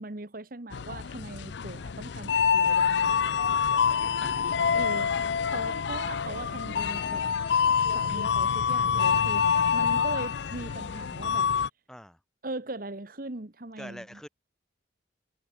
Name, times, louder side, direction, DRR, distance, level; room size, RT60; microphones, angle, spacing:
voice 1, 0.0-3.2 4.7-5.1 5.5-7.2 7.9-11.5 12.4-14.2, right 2 dB, 45° right, 1.3 m, -39 dB
sound 1, 0.7-11.7, left 6 dB, 65° left, 0.4 m, -26 dB
voice 2, 11.9-12.2 13.8-14.3, equal, 5° left, 4.7 m, -44 dB
head